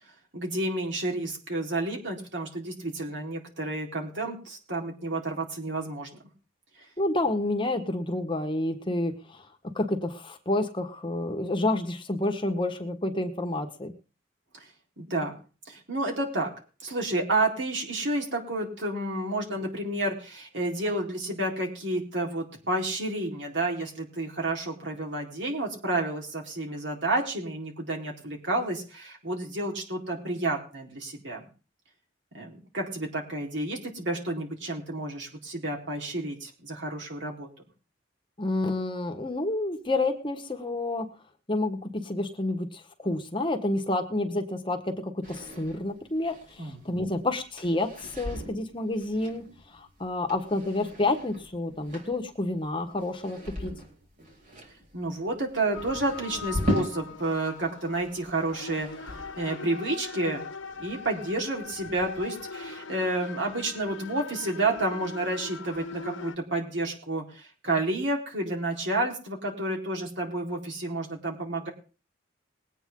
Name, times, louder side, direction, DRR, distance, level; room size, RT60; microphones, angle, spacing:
voice 1, 0.3-6.2 15.0-15.4 15.6-16.5 16.8-31.5 32.3-37.5 46.6-47.1 54.9-60.4 60.8-71.7, right 2 dB, 65° right, 0 dB, 4.2 m, -30 dB
voice 2, 7.0-13.9 38.4-41.1 41.5-49.4 49.7-53.7, left 2 dB, 25° left, 5 dB, 1.4 m, -29 dB
sound 1, 45.2-57.5 57.8-59.4, equal, 40° right, 4.2 m, -38 dB
sound 2, 55.7-66.4, left 4 dB, 80° left, 1.2 m, -41 dB
21.0 x 9.1 x 3.8 m, 0.34 s
head